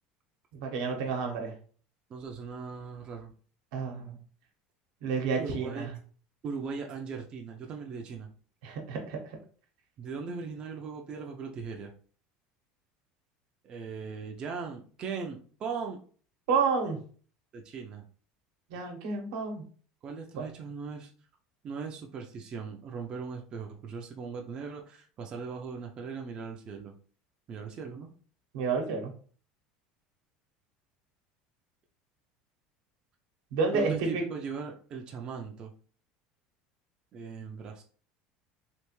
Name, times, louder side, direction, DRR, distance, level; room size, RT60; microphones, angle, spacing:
voice 1, 0.5-1.5 3.7-4.2 5.0-5.9 8.6-9.4 16.5-17.0 18.7-19.6 20.4-20.5 28.5-29.1 33.5-34.2, right 4 dB, 85° right, 2 dB, 1.0 m, -30 dB
voice 2, 2.1-3.3 5.4-5.9 6.4-8.3 10.0-11.9 13.6-16.0 17.5-18.0 20.0-21.1 21.6-26.9 27.5-28.1 33.7-35.7 37.1-37.8, right 5 dB, 30° right, 2 dB, 0.4 m, -39 dB
3.3 x 2.4 x 3.1 m, 0.43 s
cardioid pair, 145°, 3 cm